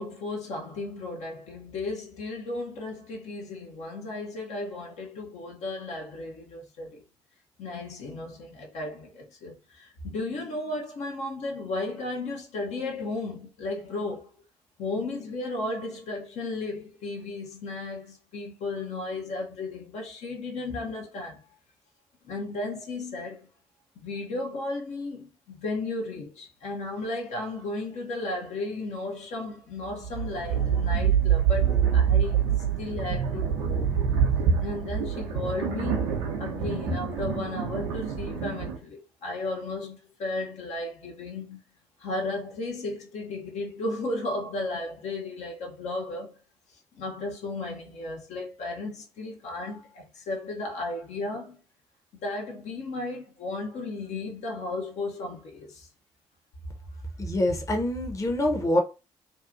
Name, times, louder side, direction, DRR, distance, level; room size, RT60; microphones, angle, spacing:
voice 1, 0.0-7.0 7.6-14.4 14.8-21.4 22.2-23.5 24.0-32.5 32.8-33.9 34.6-41.6 42.0-46.4 46.9-51.6 52.2-55.9, left 2 dB, 60° left, 0.7 m, -34 dB
sound 1, 29.9-38.8, right 7 dB, 80° right, 0.5 m, -26 dB
voice 2, 57.2-58.8, left 1 dB, 25° left, 0.8 m, -25 dB
2.6 x 2.3 x 2.5 m
figure-of-eight pair, 40°, 13 cm